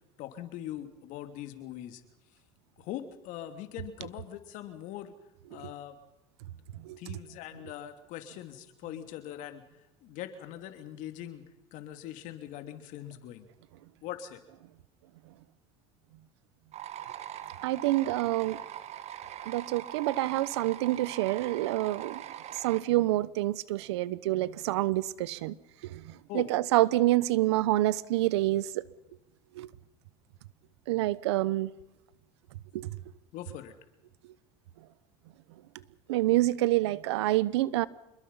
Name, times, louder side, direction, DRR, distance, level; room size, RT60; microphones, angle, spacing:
voice 1, 0.2-2.0 2.8-5.1 5.5-6.0 7.0-9.6 10.0-11.4 11.7-13.5 14.0-14.4 26.3-26.5 33.3-33.7, left 12 dB, 70° left, 2.9 m, -41 dB
sound 1, 16.7-22.8, right 11 dB, 55° right, 1.7 m, -42 dB
voice 2, 17.6-18.6 19.5-22.2 22.5-25.6 25.8-28.9 29.5-29.7 30.9-31.7 32.7-33.0 36.1-37.9, right 16 dB, 90° right, 0.9 m, -27 dB
27.0 x 22.0 x 5.6 m
supercardioid pair, 90°, 14 cm